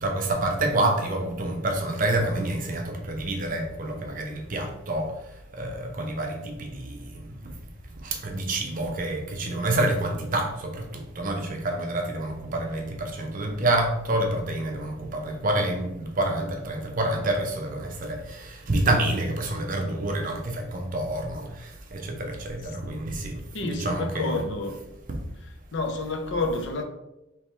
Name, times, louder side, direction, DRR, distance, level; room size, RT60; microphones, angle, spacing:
voice 1, 0.0-5.1 5.5-7.3 8.0-24.4 25.1-25.2, right 1 dB, 40° right, 0.7 m, -28 dB
voice 2, 23.5-24.7 25.7-26.8, left 3 dB, 60° left, 0.6 m, -29 dB
3.4 x 3.0 x 4.2 m
head